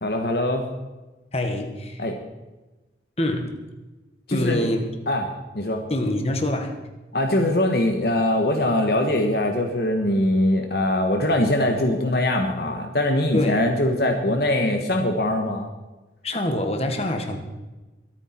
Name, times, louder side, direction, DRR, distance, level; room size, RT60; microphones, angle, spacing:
voice 1, 0.0-0.7 2.0-2.2 4.3-4.7 5.1-5.3 5.5-5.8 7.1-15.7, left 1 dB, 60° left, 4 dB, 1.4 m, -22 dB
voice 2, 1.3-2.1 3.2-3.6 4.3-4.8 5.9-6.8 13.3-13.6 16.2-17.4, left 1 dB, 35° left, 5 dB, 1.6 m, -25 dB
23.0 x 9.1 x 4.5 m, 1.1 s
head